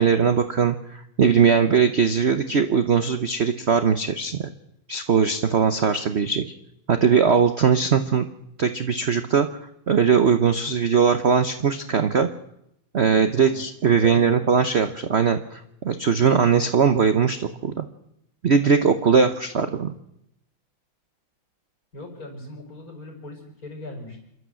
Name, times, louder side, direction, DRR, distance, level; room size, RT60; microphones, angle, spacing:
voice 1, 0.0-4.5 4.9-6.5 6.9-8.2 8.6-9.5 9.9-12.3 12.9-17.9 18.4-20.0, right 6 dB, 45° right, 9 dB, 0.9 m, -20 dB
voice 2, 13.3-13.6 14.0-14.4 21.9-24.2, left 2 dB, 45° left, 1 dB, 5.6 m, -39 dB
27.5 x 12.5 x 7.6 m, 0.80 s
omnidirectional pair, 2.2 m